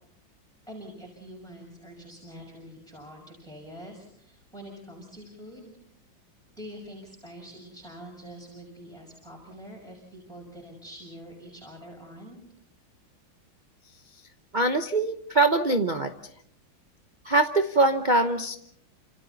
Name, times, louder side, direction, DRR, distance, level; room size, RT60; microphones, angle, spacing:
voice 1, 0.7-5.7 6.6-12.4, equal, ahead, -2 dB, 5.9 m, -45 dB
voice 2, 14.5-16.1 17.2-18.5, right 2 dB, 35° right, 6 dB, 0.8 m, -23 dB
30.0 x 27.5 x 4.1 m, 0.65 s
omnidirectional pair, 2.2 m